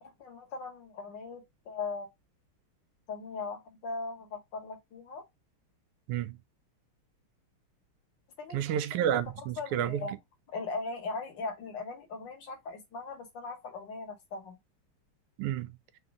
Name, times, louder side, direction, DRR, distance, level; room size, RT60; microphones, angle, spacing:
voice 1, 0.0-2.1 3.1-5.2 8.4-8.8 9.6-10.1 10.5-14.6, left 4 dB, 60° left, 1.5 m, -39 dB
voice 2, 8.5-10.1 15.4-15.7, right 10 dB, 85° right, 1.5 m, -30 dB
4.0 x 2.7 x 3.5 m
omnidirectional pair, 2.4 m